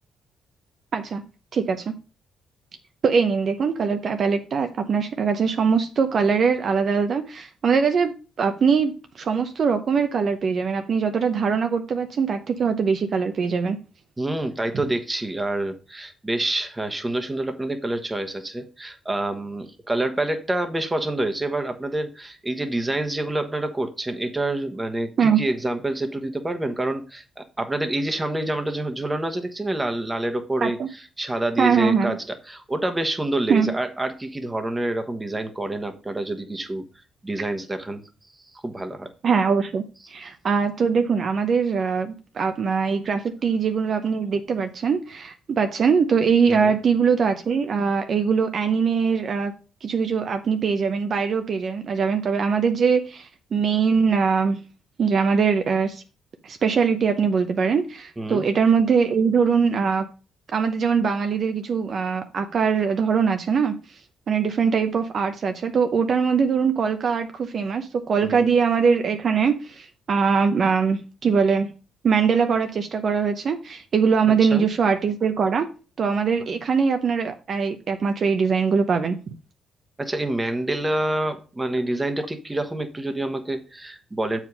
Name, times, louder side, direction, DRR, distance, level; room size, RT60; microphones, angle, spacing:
voice 1, 1.5-1.9 3.0-13.8 25.2-25.4 30.6-30.9 31.6-32.1 33.5-33.7 39.2-39.8 40.1-49.5 49.8-54.6 55.0-56.0 56.4-60.1 60.5-63.7 64.3-71.7 72.0-75.7 76.0-79.2, right 6 dB, 50° right, 0.7 m, -22 dB
voice 2, 14.2-36.8 37.2-38.0 38.5-39.1 46.5-46.7 58.2-58.5 68.2-68.5 74.4-74.7 80.0-84.4, right 1 dB, 15° right, 1.2 m, -27 dB
7.2 x 4.9 x 5.4 m
cardioid pair, 90°, 0 cm